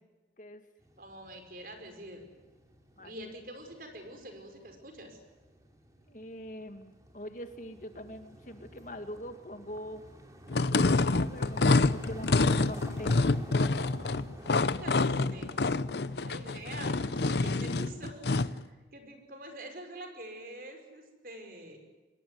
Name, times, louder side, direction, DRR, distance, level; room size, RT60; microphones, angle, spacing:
sound 1, 0.8-18.6, right 1 dB, 20° right, 3.6 m, -50 dB
voice 1, 1.0-2.2 3.0-5.2 14.6-15.8 16.2-21.8, right 1 dB, 50° right, 6 dB, 5.3 m, -46 dB
voice 2, 6.1-10.0 10.6-13.3, equal, 45° left, 7 dB, 2.0 m, -43 dB
sound 2, 10.5-18.6, left 3 dB, 70° left, 0.8 m, -27 dB
25.5 x 20.5 x 9.6 m, 1.2 s
head